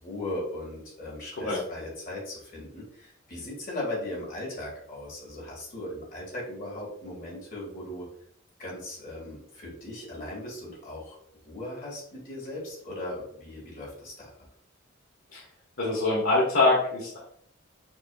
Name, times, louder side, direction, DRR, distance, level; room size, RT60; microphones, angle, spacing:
voice 1, 0.0-8.1 8.6-11.2 11.4-14.3, left 1 dB, 45° left, -4 dB, 1.7 m, -38 dB
voice 2, 15.8-17.2, left 2 dB, 85° left, -6 dB, 1.2 m, -24 dB
6.1 x 2.7 x 2.3 m, 0.65 s
head